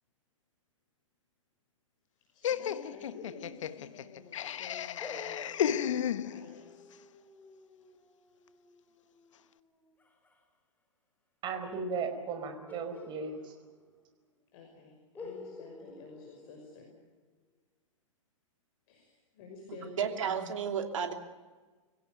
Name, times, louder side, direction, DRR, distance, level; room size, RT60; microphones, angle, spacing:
voice 1, 2.3-6.6 14.5-16.9 18.9-20.1, left 4 dB, 45° left, 2 dB, 5.9 m, -50 dB
Laughter, 2.4-6.7, left 9 dB, 65° left, 1.2 m, -33 dB
sound 1, 5.0-10.4 12.7-14.1 14.4-14.5 15.1-17.3, left 3 dB, 10° left, 3.1 m, -51 dB
voice 2, 11.4-13.5, right 5 dB, 25° right, 6 dB, 4.9 m, -36 dB
voice 3, 20.0-21.1, right 7 dB, 70° right, 5 dB, 2.9 m, -32 dB
25.5 x 17.0 x 9.2 m, 1.3 s
hypercardioid pair, 125°, 17 cm